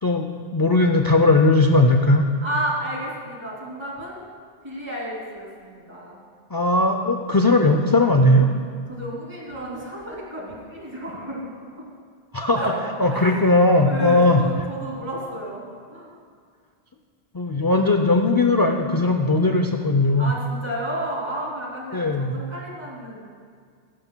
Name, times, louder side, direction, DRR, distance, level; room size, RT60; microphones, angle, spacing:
voice 1, 0.0-2.3 6.5-8.5 12.3-12.6 13.0-14.4 17.3-20.3 21.9-22.3, left 2 dB, 35° left, 4 dB, 0.3 m, -18 dB
voice 2, 2.4-4.2 4.6-6.2 8.9-11.9 12.5-12.7 13.1-13.3 13.8-16.1 20.2-23.2, right 1 dB, 25° right, -4 dB, 2.7 m, -31 dB
16.5 x 13.5 x 2.2 m, 2.1 s
omnidirectional pair, 1.1 m